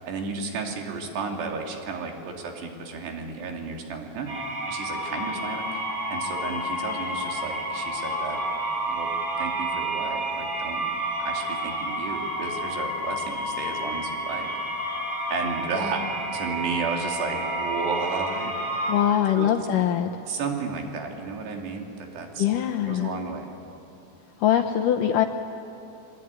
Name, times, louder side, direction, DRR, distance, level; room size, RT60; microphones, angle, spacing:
voice 1, 0.0-4.3 4.7-8.4 8.9-9.1 9.4-10.8 11.2-14.5 15.3-18.9 19.3-19.7 20.3-22.5 22.9-23.5, right 4 dB, 90° right, 2 dB, 4.6 m, -33 dB
sound 1, 4.3-18.9, right 1 dB, 30° right, 7.2 m, -30 dB
voice 2, 18.9-20.1 22.4-23.1 24.4-25.3, left 10 dB, 75° left, 5 dB, 2.0 m, -22 dB
25.5 x 21.0 x 9.6 m, 2.9 s
omnidirectional pair, 4.7 m